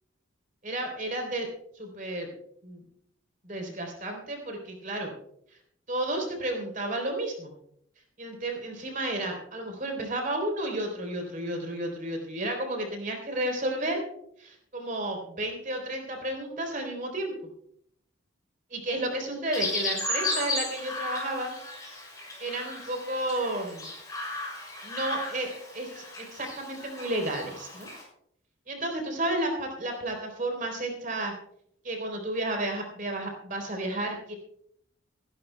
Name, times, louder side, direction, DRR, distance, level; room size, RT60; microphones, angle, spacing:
voice 1, 0.6-1.5 1.8-2.3 2.6-2.8 3.4-5.1 5.9-7.5 8.2-14.0 14.4-17.3 18.7-21.5 22.4-23.9 24.8-26.0 26.3-27.9 28.7-31.3 31.8-34.3, right 1 dB, 40° right, 2 dB, 3.6 m, -32 dB
Chirp tweet, 19.5-28.0, left 2 dB, 20° left, 6.1 m, -35 dB
26.0 x 11.5 x 2.3 m, 0.72 s
head